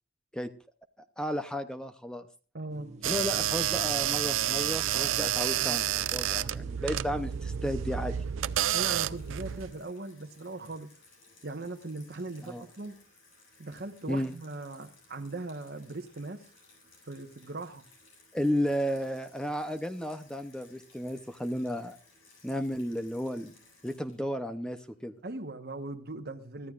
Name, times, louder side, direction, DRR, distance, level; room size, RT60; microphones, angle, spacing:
voice 1, 1.2-2.2 3.0-8.2 12.5-12.6 14.1-14.3 18.3-22.0 22.4-23.5 23.8-25.1, equal, 5° left, 0.7 m, -33 dB
voice 2, 2.5-2.9 8.7-10.9 11.4-13.0 13.6-16.5 17.1-17.8 25.2-26.7, right 2 dB, 50° right, 1.3 m, -39 dB
sound 1, 2.7-9.8, right 2 dB, 35° right, 1.2 m, -49 dB
sound 2, 3.0-9.7, right 11 dB, 75° right, 0.5 m, -30 dB
Water tap faucet / Sink (filling or washing), 8.5-25.3, left 3 dB, 80° left, 7.6 m, -60 dB
23.5 x 13.5 x 2.5 m
head